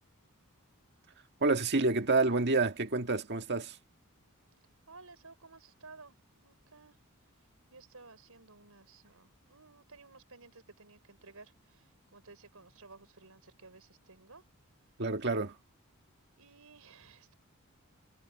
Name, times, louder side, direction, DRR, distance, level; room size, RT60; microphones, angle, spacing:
voice 1, 1.4-3.8 15.0-15.6, right 3 dB, 50° right, 1.9 m, -28 dB
voice 2, 4.9-7.0 7.7-11.8 12.1-14.4 16.4-17.3, right 3 dB, 75° right, 5.1 m, -55 dB
head